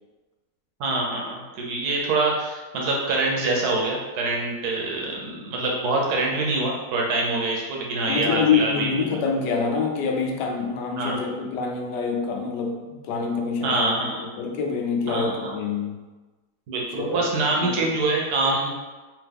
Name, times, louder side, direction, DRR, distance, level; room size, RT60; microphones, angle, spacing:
voice 1, 0.8-8.9 11.0-11.2 13.6-14.2 15.1-15.6 16.7-18.7, right 2 dB, 65° right, -1 dB, 1.3 m, -25 dB
voice 2, 8.1-16.0 17.0-17.3 17.6-17.9, left 5 dB, 80° left, 2 dB, 1.2 m, -26 dB
3.6 x 2.9 x 3.4 m, 1.2 s
omnidirectional pair, 1.9 m